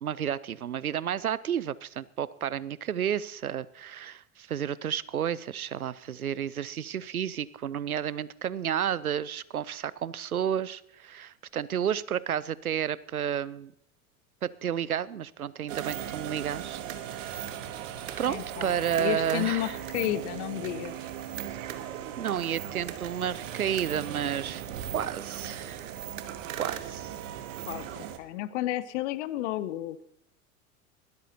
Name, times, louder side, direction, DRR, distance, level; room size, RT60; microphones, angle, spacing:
voice 1, 0.0-13.7 14.4-16.8 17.1-17.6 18.2-19.8 22.2-24.7 24.9-26.0 26.6-27.2, right 9 dB, 85° right, 20 dB, 0.5 m, -31 dB
sound 1, 15.7-28.2, right 10 dB, 65° right, 1.3 m, -38 dB
voice 2, 18.3-21.0 27.7-27.9 28.2-30.0, left 14 dB, 55° left, 16 dB, 0.9 m, -32 dB
20.0 x 13.0 x 2.7 m, 0.74 s
figure-of-eight pair, 80°, 42 cm